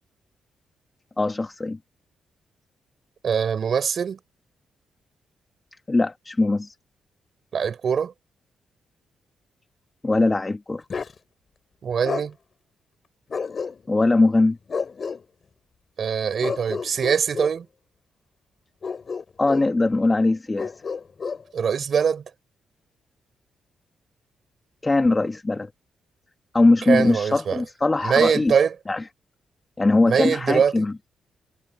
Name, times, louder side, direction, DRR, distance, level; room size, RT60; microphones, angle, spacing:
voice 1, 1.2-1.8 5.9-6.7 10.0-10.8 13.9-14.6 19.4-20.7 24.8-25.7 26.5-28.5 28.9-29.0 29.8-30.9, left 2 dB, 20° left, 1.5 m, -21 dB
voice 2, 3.2-4.2 7.5-8.1 11.8-12.3 16.0-17.7 21.5-22.2 26.9-27.6 28.0-28.7 30.1-30.8, right 7 dB, 55° right, 4.4 m, -22 dB
Bark, 10.9-11.2 12.0-12.3 13.3-14.0 14.7-15.2 16.4-17.6 18.8-19.7 20.6-21.4, left 5 dB, 40° left, 3.8 m, -30 dB
cardioid pair, 110°, 0 cm